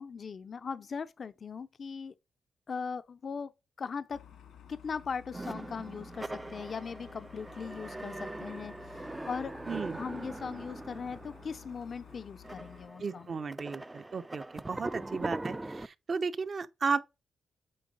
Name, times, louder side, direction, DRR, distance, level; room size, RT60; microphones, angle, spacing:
voice 1, 0.0-2.1 2.7-3.5 3.8-4.2 4.7-9.6 9.9-13.3, left 5 dB, 50° left, 0.5 m, -39 dB
sound 1, 4.1-12.9, left 9 dB, 90° left, 2.2 m, -53 dB
sound 2, 5.3-15.9, right 2 dB, 15° right, 0.4 m, -41 dB
voice 2, 9.7-10.0 13.0-17.0, right 5 dB, 45° right, 0.7 m, -34 dB
8.7 x 3.6 x 5.3 m
cardioid pair, 100°, 0 cm